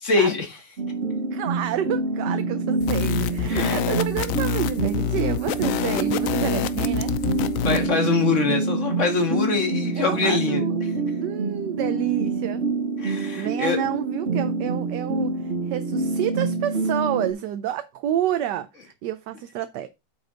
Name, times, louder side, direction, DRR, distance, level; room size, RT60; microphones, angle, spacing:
voice 1, 0.1-0.5 3.4-3.8 7.6-10.6 13.0-13.8, left 4 dB, 40° left, 2.1 m, -23 dB
sound 1, 0.8-17.3, right 3 dB, 40° right, 1.1 m, -27 dB
voice 2, 1.3-7.1 10.0-12.6 13.4-19.9, right 11 dB, 75° right, 1.2 m, -29 dB
sound 2, 2.8-7.9, left 9 dB, 70° left, 0.8 m, -27 dB
8.1 x 5.9 x 3.9 m
omnidirectional pair, 2.0 m